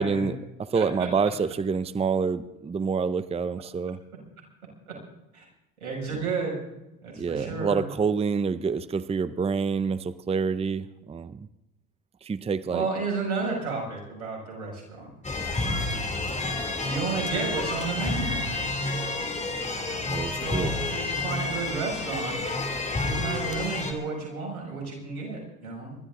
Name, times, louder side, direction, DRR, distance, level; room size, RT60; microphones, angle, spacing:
voice 1, 0.0-4.0 7.2-11.5 12.2-12.9 15.6-15.8 20.1-20.7, right 5 dB, 15° right, 15 dB, 0.7 m, -27 dB
voice 2, 0.7-1.1 4.9-5.0 5.3-5.5 5.8-6.6 7.0-7.8 12.7-15.1 16.8-18.4 20.4-22.4 23.1-26.0, right 4 dB, 90° right, -1 dB, 6.5 m, -32 dB
sound 1, 15.2-23.9, left 2 dB, 15° left, 2.9 m, -30 dB
26.0 x 12.5 x 3.9 m, 0.93 s
hypercardioid pair, 80°, 42 cm